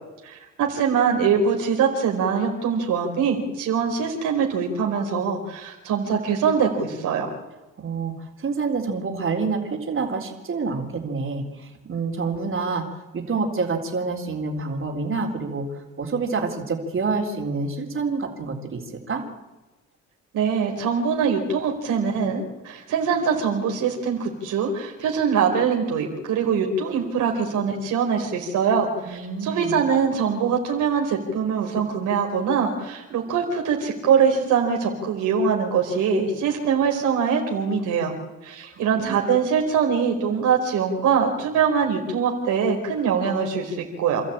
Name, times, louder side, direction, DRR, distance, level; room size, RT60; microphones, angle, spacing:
voice 1, 0.2-7.3 20.3-38.1 38.4-44.2, right 6 dB, 85° right, 2 dB, 4.6 m, -23 dB
voice 2, 7.8-12.9 13.1-19.2 29.0-29.8 39.0-39.3, right 4 dB, 45° right, 2 dB, 4.0 m, -27 dB
28.5 x 13.5 x 8.9 m, 1.1 s
cardioid pair, 90°, 30 cm